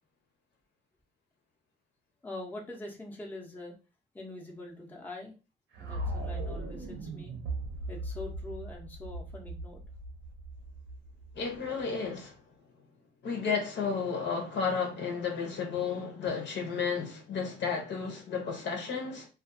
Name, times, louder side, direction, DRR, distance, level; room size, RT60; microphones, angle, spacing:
voice 1, 2.2-3.7 4.1-5.3 5.8-7.4 7.9-9.8, left 2 dB, 10° left, 0.7 m, -43 dB
sound 1, 5.7-11.8, right 1 dB, 75° right, 0.8 m, -38 dB
voice 2, 11.3-12.4 13.2-19.3, left 5 dB, 65° left, 0.8 m, -32 dB
2.4 x 2.4 x 2.5 m
cardioid pair, 90°, 20 cm